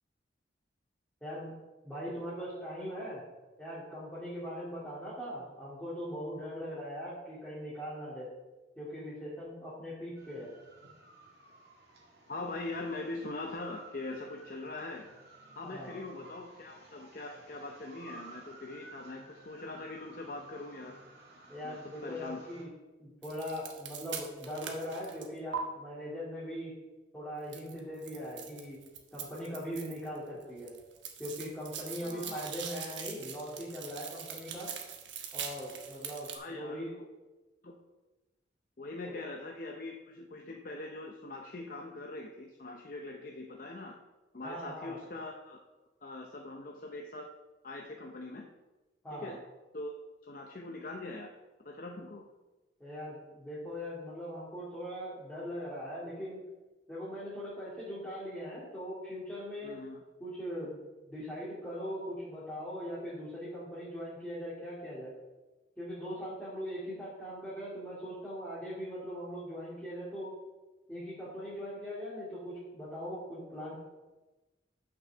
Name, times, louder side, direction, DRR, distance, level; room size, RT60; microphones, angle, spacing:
voice 1, 1.2-1.5 1.8-3.2 3.6-8.3 8.8-10.5 15.6-15.9 21.5-22.7 23.0-26.7 27.1-28.8 29.1-30.7 31.2-34.7 35.3-36.9 39.0-39.2 44.4-45.0 49.0-49.4 52.8-56.4 56.9-59.8 60.2-60.8 61.0-65.1 65.8-70.3 70.9-73.7, equal, 10° left, -12 dB, 2.3 m, -40 dB
sound 1, 10.2-22.6, right 2 dB, 55° right, 2.3 m, -55 dB
voice 2, 12.3-15.1 15.5-21.0 21.6-22.5 32.0-32.5 36.3-37.1 37.6-37.8 38.8-44.0 44.3-45.6 46.0-47.3 47.6-48.5 49.1-49.4 49.7-49.9 50.2-51.3 51.6-52.3 59.6-60.0, left 2 dB, 45° left, 1 dB, 0.6 m, -42 dB
sound 2, 23.2-25.6 27.5-30.2 30.4-36.4, right 8 dB, 80° right, 1.1 m, -42 dB
6.2 x 6.1 x 6.6 m, 1.1 s
head